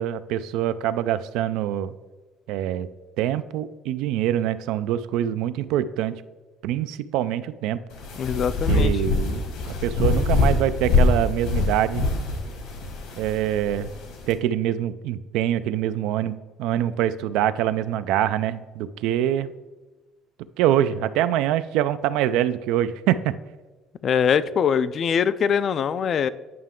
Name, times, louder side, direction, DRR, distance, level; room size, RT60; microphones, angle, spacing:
voice 1, 0.0-1.9 2.5-2.9 3.2-6.2 6.6-7.8 8.7-12.0 13.2-13.9 14.3-19.5 20.6-23.3, right 11 dB, 85° right, 14 dB, 0.3 m, -24 dB
sound 1, 7.9-14.3, left 3 dB, 80° left, 1.8 m, -24 dB
voice 2, 8.2-9.0 24.0-26.3, left 7 dB, 40° left, 15 dB, 0.3 m, -22 dB
9.4 x 5.6 x 3.7 m, 1.2 s
cardioid pair, 135°, 0 cm